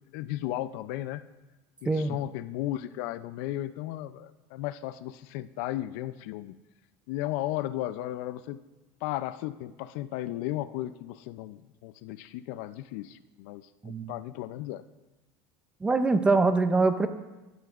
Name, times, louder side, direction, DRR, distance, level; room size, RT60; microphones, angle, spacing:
voice 1, 0.1-1.2 1.8-6.6 7.1-8.6 9.0-14.8, left 14 dB, 70° left, 14 dB, 0.5 m, -35 dB
voice 2, 1.9-2.2 13.8-14.1 15.8-17.1, right 3 dB, 10° right, 10 dB, 0.5 m, -23 dB
15.5 x 12.5 x 2.5 m, 1.1 s
cardioid pair, 155°, 9 cm